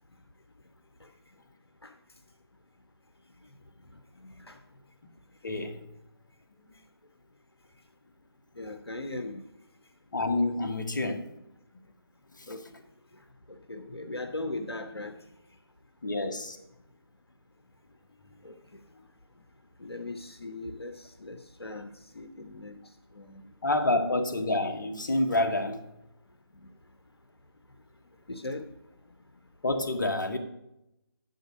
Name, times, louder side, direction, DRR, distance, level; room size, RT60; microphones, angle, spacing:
voice 1, 4.2-4.6 8.6-9.4 12.5-12.8 13.5-15.1 18.4-18.5 19.8-21.9 22.1-22.8 23.1-23.4 28.3-28.7, left 2 dB, 75° left, 6 dB, 1.1 m, -39 dB
voice 2, 5.4-5.8 10.1-11.4 11.7-11.8 12.4-12.5 16.0-16.6 23.6-25.8 29.6-30.4, left 2 dB, 50° left, 5 dB, 1.4 m, -28 dB
11.0 x 5.2 x 6.2 m, 0.86 s
figure-of-eight pair, 150°, 13 cm